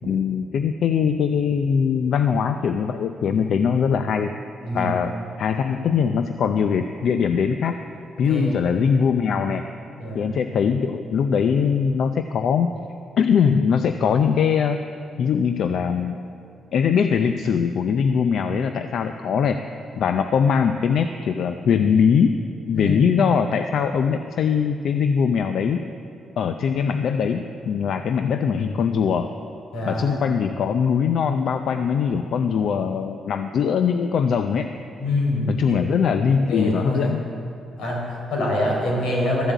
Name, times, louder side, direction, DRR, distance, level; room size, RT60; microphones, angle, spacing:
voice 1, 0.1-4.3 4.7-7.8 8.2-9.6 10.1-12.7 13.2-14.8 15.2-16.2 16.7-19.6 20.0-22.3 22.7-25.8 26.4-29.3 29.8-34.7 35.4-37.3, left 6 dB, 65° left, 8 dB, 0.5 m, -21 dB
voice 2, 8.2-8.5 10.0-10.3 22.7-23.1 29.7-30.2 35.0-35.8 36.4-37.1 37.8-39.5, left 1 dB, 90° left, -2 dB, 4.1 m, -25 dB
13.5 x 7.5 x 8.2 m, 2.5 s
cardioid pair, 140°, 0 cm